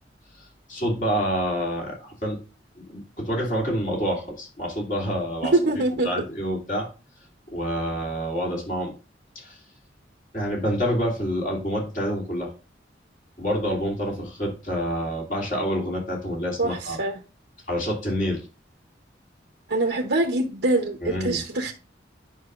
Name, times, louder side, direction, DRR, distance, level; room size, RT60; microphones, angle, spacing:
voice 1, 0.4-2.4 2.8-5.6 6.0-6.9 7.5-8.9 9.3-9.6 10.3-12.5 13.4-17.0 17.7-18.5 21.0-21.4, equal, 45° left, -2 dB, 2.7 m, -27 dB
voice 2, 5.5-6.1 16.6-17.1 19.7-21.7, right 2 dB, 75° right, 2 dB, 0.8 m, -24 dB
9.6 x 5.4 x 2.4 m, 0.33 s
head